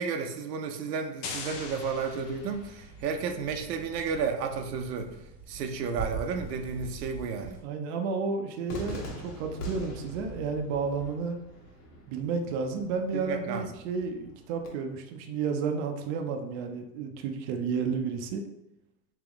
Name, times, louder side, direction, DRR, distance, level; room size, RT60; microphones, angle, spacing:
voice 1, 0.0-5.1 5.5-7.6 13.1-13.7, right 5 dB, 90° right, 5 dB, 0.8 m, -32 dB
sound 1, 1.2-3.0, left 5 dB, 40° left, 0.6 m, -41 dB
sound 2, 1.4-7.6, right 4 dB, 5° right, 0.8 m, -43 dB
voice 2, 7.6-11.4 12.1-18.4, right 5 dB, 45° right, 4 dB, 0.5 m, -32 dB
Cheering / Fireworks, 8.7-14.7, equal, 70° left, 1.3 m, -43 dB
3.6 x 2.9 x 3.5 m, 0.88 s
supercardioid pair, 140°, 47 cm